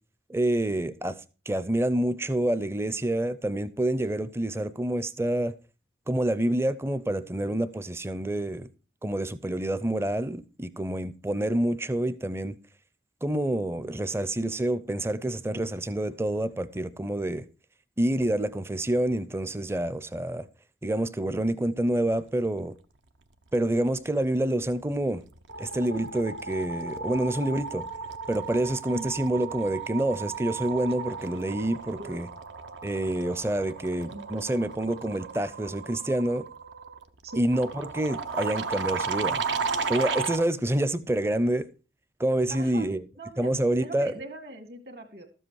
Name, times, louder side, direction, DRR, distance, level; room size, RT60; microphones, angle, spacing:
voice 1, 0.3-1.2 1.5-5.5 6.1-8.7 9.0-12.6 13.2-17.5 18.0-20.5 20.8-22.7 23.5-25.2 25.6-27.9 28.3-32.3 32.8-36.5 37.4-39.4 39.9-41.7 42.2-43.0 43.4-44.1, right 1 dB, 15° right, 0.5 m, -27 dB
sound 1, 24.6-24.9 25.2-40.5, right 5 dB, 75° right, 0.9 m, -35 dB
voice 2, 42.5-42.9 43.2-43.5 43.8-45.3, right 2 dB, 55° right, 2.0 m, -41 dB
13.0 x 7.7 x 4.7 m
head